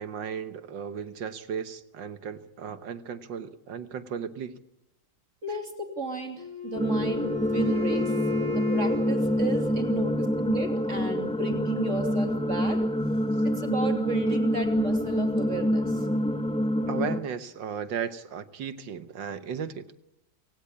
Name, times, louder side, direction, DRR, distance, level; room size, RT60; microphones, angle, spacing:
voice 1, 0.0-4.5 16.9-19.9, right 7 dB, 65° right, 12 dB, 1.7 m, -35 dB
voice 2, 5.4-8.1 8.5-12.8 13.4-16.1, right 3 dB, 35° right, 4 dB, 3.2 m, -34 dB
Wind instrument woodwind instrument, 6.4-10.4, left 7 dB, 35° left, 4.7 m, -35 dB
sound 1, 6.7-17.2, equal, 5° left, 0.8 m, -26 dB
28.0 x 17.0 x 8.6 m, 0.86 s
omnidirectional pair, 2.3 m